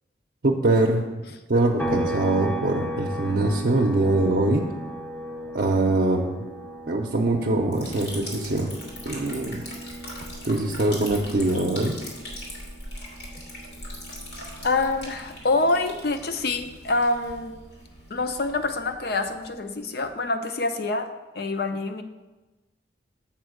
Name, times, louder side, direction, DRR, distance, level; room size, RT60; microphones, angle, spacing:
voice 1, 0.4-1.2 1.5-4.6 5.5-6.4 6.9-8.8 9.0-9.6 10.4-12.0, right 2 dB, 55° right, 0 dB, 0.6 m, -23 dB
sound 1, 1.8-15.3 15.7-17.9, right 1 dB, 10° left, 0.6 m, -37 dB
Liquid, 7.7-20.2, left 1 dB, 80° left, 2.2 m, -41 dB
voice 2, 14.6-17.5 18.1-21.1 21.3-22.0, left 3 dB, 55° left, 8 dB, 0.6 m, -26 dB
7.5 x 4.4 x 6.3 m, 1.1 s
head